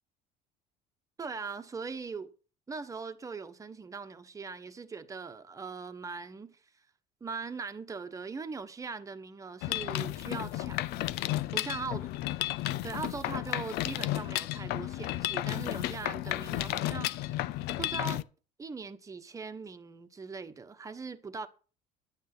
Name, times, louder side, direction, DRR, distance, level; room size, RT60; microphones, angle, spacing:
voice 1, 1.2-2.3 2.7-6.6 7.2-11.3 11.5-12.1 12.8-17.5 17.8-18.2 18.6-21.5, right 4 dB, 20° right, 1.2 m, -40 dB
Mechanisms, 9.6-18.2, left 15 dB, 70° left, 0.6 m, -33 dB
11.0 x 9.4 x 6.1 m
cardioid pair, 130°, 17 cm